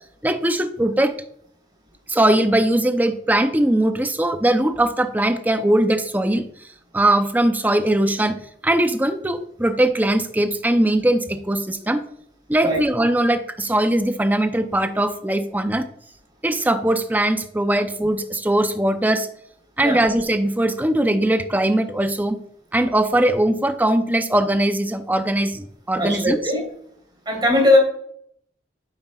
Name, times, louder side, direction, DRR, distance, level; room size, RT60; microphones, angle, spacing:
voice 1, 0.2-1.1 2.1-6.4 6.9-8.4 8.6-12.0 12.5-15.9 16.4-19.3 19.8-22.4 22.7-26.5, right 1 dB, 10° right, 8 dB, 0.5 m, -20 dB
voice 2, 26.0-26.6 27.2-27.8, left 1 dB, 25° right, -1 dB, 3.3 m, -19 dB
9.7 x 7.5 x 2.3 m, 0.66 s
head